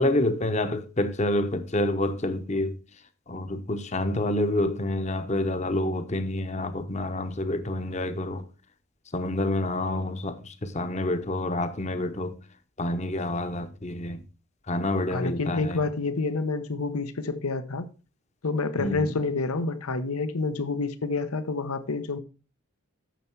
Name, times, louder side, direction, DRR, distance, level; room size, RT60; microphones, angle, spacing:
voice 1, 0.0-2.8 3.3-8.4 9.1-12.4 12.8-14.2 14.7-15.8 18.8-19.1, left 1 dB, 30° left, 0.8 m, -28 dB
voice 2, 15.1-17.9 18.4-22.2, left 3 dB, 85° left, 0.9 m, -28 dB
9.1 x 6.8 x 4.5 m
head